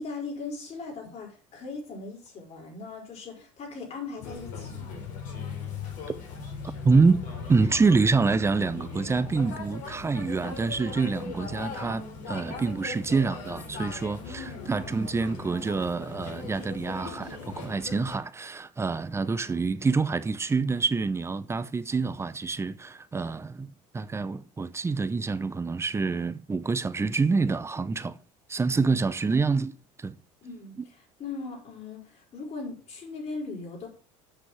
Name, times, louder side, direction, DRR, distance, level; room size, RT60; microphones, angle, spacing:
voice 1, 0.0-5.0 14.2-14.7 30.4-33.9, left 3 dB, 40° left, 5.2 m, -39 dB
sound 1, 4.2-18.2, left 5 dB, 60° left, 4.2 m, -39 dB
voice 2, 6.8-7.2 7.5-23.7 23.9-28.2 28.5-29.7 30.0-30.2, right 4 dB, 15° right, 0.7 m, -26 dB
8.0 x 6.2 x 7.5 m
supercardioid pair, 105°, 16 cm